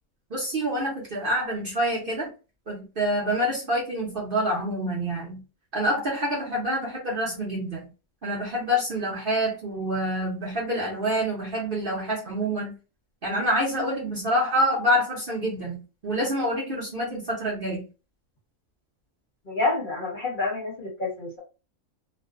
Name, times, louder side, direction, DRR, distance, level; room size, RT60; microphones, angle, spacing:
voice 1, 0.3-2.3 2.7-5.4 5.7-7.8 8.2-12.7 13.2-17.8, equal, 50° right, -3 dB, 0.7 m, -27 dB
voice 2, 19.5-21.4, left 3 dB, 45° left, -3 dB, 0.7 m, -28 dB
2.5 x 2.1 x 2.4 m, 0.31 s
omnidirectional pair, 1.4 m